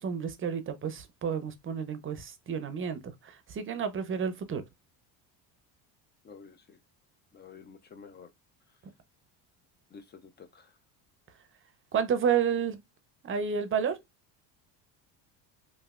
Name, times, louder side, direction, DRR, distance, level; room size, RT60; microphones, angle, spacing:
voice 1, 0.0-4.6 11.9-12.8 13.2-14.0, right 7 dB, 25° right, 0.6 m, -30 dB
voice 2, 6.2-6.8 7.3-8.3 9.9-10.7, left 5 dB, 25° left, 0.4 m, -50 dB
3.1 x 2.5 x 2.4 m
supercardioid pair, 100°, 46 cm